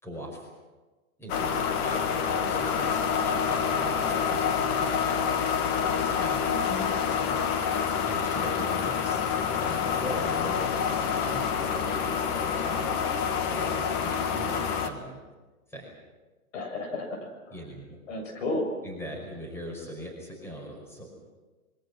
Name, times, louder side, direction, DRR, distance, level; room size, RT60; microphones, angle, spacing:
voice 1, 0.0-0.5 1.2-6.5 7.1-9.2 9.5-10.7 11.1-13.0 13.5-15.2 15.7-15.9 17.5-18.0 18.8-21.3, right 1 dB, 5° left, 0 dB, 5.2 m, -41 dB
sound 1, 1.3-14.9, left 7 dB, 30° left, 1.7 m, -27 dB
voice 2, 6.5-6.9 16.5-17.6 18.1-18.7, left 2 dB, 55° left, 4 dB, 7.3 m, -33 dB
25.5 x 23.5 x 6.2 m, 1.2 s
hypercardioid pair, 140°, 44 cm